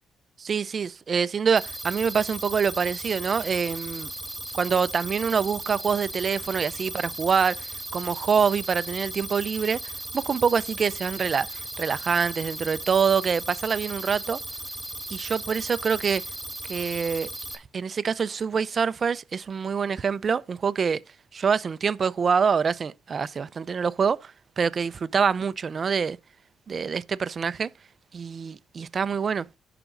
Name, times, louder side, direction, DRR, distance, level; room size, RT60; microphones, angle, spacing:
voice 1, 0.4-4.1 4.5-9.8 10.1-14.4 15.1-16.2 16.7-21.0 21.3-24.3 24.6-26.2 26.7-27.7 28.1-29.5, right 6 dB, 45° right, 0.5 m, -25 dB
sound 1, 1.6-17.6, right 1 dB, 5° right, 2.7 m, -36 dB
17.0 x 5.9 x 2.6 m
cardioid pair, 90°, 0 cm